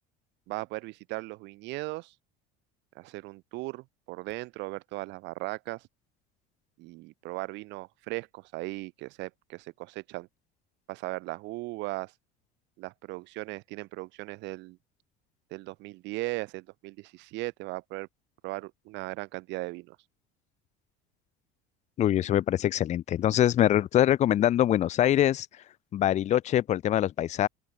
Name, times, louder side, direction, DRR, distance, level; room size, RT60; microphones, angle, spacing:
voice 1, 0.5-2.1 3.0-5.9 6.8-10.3 10.9-12.1 12.8-14.8 15.5-18.1 18.4-20.0, right 22 dB, 60° right, 5.3 m, -37 dB
voice 2, 22.0-25.5 25.9-27.5, left 12 dB, 35° left, 1.1 m, -24 dB
open air
cardioid pair, 150°, 20 cm